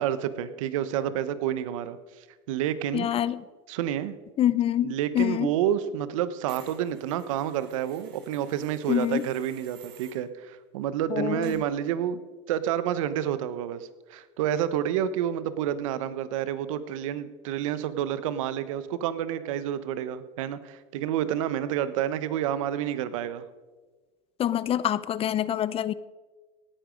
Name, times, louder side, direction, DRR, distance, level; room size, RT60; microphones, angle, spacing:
voice 1, 0.0-2.0 2.5-3.1 3.7-4.1 4.8-12.2 12.5-23.5, right 10 dB, 80° right, 14 dB, 1.1 m, -29 dB
voice 2, 2.9-3.4 4.4-5.5 8.9-9.3 11.1-11.6 24.4-25.9, left 11 dB, 35° left, 17 dB, 0.6 m, -26 dB
sound 1, 6.5-10.2 11.4-11.5, right 8 dB, 60° right, 5.5 m, -53 dB
18.0 x 9.9 x 5.2 m, 1.3 s
supercardioid pair, 100°, 17 cm